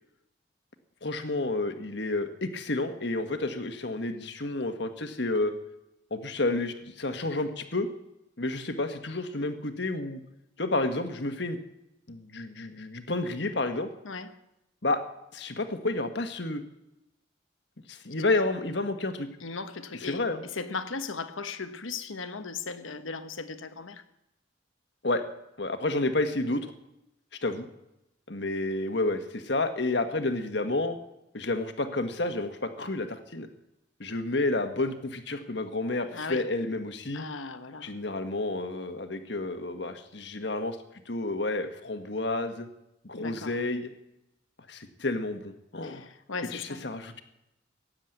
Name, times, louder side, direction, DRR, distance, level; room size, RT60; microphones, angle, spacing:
voice 1, 1.0-5.5 6.1-7.9 8.4-10.2 10.6-11.6 12.1-13.9 14.8-15.0 15.3-16.6 17.9-19.3 20.0-20.4 25.0-25.2 25.6-26.7 27.4-27.7 28.3-31.0 31.3-33.5 34.0-37.2 37.8-40.8 41.1-42.7 43.0-43.9 44.7-46.1 46.5-47.2, left 2 dB, 60° left, 1.5 m, -30 dB
voice 2, 19.4-24.0 36.1-36.5 37.1-37.9 43.1-43.6 45.8-46.8, left 4 dB, 85° left, 1.2 m, -37 dB
16.5 x 10.5 x 8.0 m
head